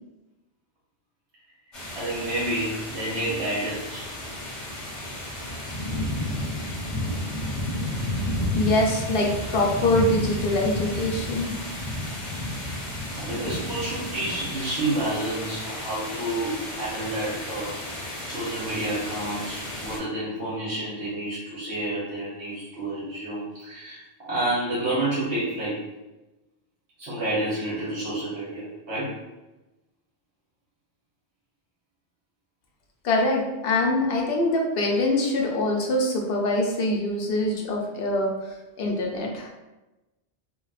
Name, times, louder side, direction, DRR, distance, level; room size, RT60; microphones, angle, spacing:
sound 1, 1.7-20.0, left 1 dB, 30° left, 0.8 m, -32 dB
voice 1, 1.9-4.1 13.2-17.8 18.3-24.0 24.3-25.8 27.0-29.1, right 1 dB, 75° right, -9 dB, 1.1 m, -29 dB
voice 2, 8.5-11.5 33.0-39.5, left 1 dB, 65° left, -1 dB, 0.7 m, -24 dB
2.9 x 2.0 x 2.3 m, 1.1 s
omnidirectional pair, 1.1 m